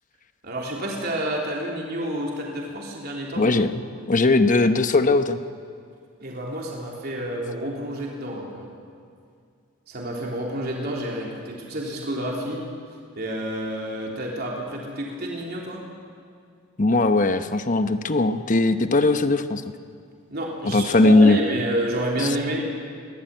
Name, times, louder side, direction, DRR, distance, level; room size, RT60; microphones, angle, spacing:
voice 1, 0.4-3.5 6.2-8.7 9.9-12.6 13.2-15.8 20.3-22.7, right 1 dB, 50° right, -2 dB, 3.6 m, -29 dB
voice 2, 3.4-3.8 4.1-5.4 16.8-19.6 20.7-21.4, left 2 dB, 40° left, 9 dB, 1.0 m, -19 dB
23.0 x 17.0 x 9.1 m, 2.3 s
head